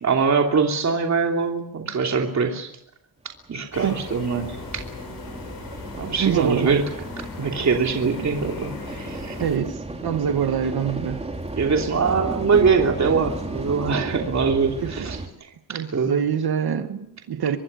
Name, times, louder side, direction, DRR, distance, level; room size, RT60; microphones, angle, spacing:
voice 1, 0.0-2.7 3.5-4.6 6.0-6.8 7.4-9.4 11.6-15.2 15.7-16.2, right 5 dB, 45° right, 2 dB, 3.1 m, -22 dB
sound 1, 3.4-15.3, right 2 dB, 15° right, 3.0 m, -34 dB
sound 2, 3.7-9.6, left 4 dB, 65° left, 6.6 m, -38 dB
voice 2, 6.2-6.8 9.4-11.2 14.8-15.1 15.7-17.6, right 8 dB, 70° right, 8 dB, 2.0 m, -25 dB
24.5 x 23.0 x 6.8 m, 0.76 s
wide cardioid pair, 130°, 40 cm